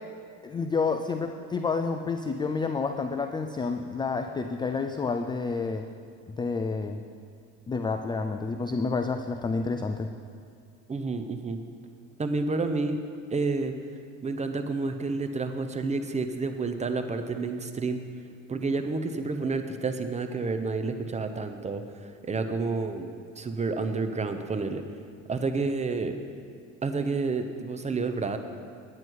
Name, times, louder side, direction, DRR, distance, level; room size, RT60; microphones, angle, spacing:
voice 1, 0.4-5.9 6.4-7.0 7.7-10.1, left 4 dB, 15° left, 7 dB, 0.3 m, -29 dB
voice 2, 10.9-11.6 12.2-13.0 13.3-13.7 14.2-18.0 18.5-23.1 23.4-24.8 25.3-26.2 26.8-28.4, right 3 dB, 20° right, 7 dB, 0.7 m, -29 dB
9.7 x 9.4 x 4.7 m, 2.2 s
supercardioid pair, 100°, 37 cm